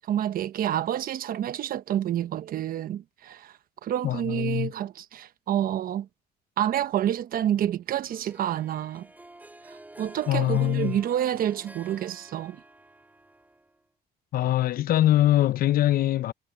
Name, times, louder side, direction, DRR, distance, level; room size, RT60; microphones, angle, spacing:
voice 1, 0.0-3.5 3.8-6.1 6.6-9.1 10.0-12.6, right 11 dB, 60° right, 1.0 m, -28 dB
voice 2, 4.0-4.7 10.3-11.0 14.3-16.3, left 14 dB, 60° left, 0.7 m, -23 dB
Harp, 8.1-13.9, right 2 dB, 10° right, 3.6 m, -49 dB
cardioid pair, 110°, 17 cm